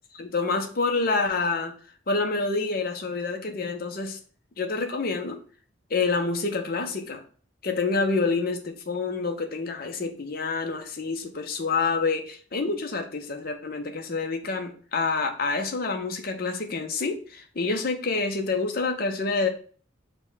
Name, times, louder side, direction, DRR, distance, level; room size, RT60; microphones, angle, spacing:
voice 1, 0.1-1.7 2.1-4.2 4.6-5.4 5.9-7.2 7.6-19.5, left 4 dB, 45° left, 5 dB, 0.6 m, -27 dB
5.2 x 2.2 x 4.7 m, 0.42 s
head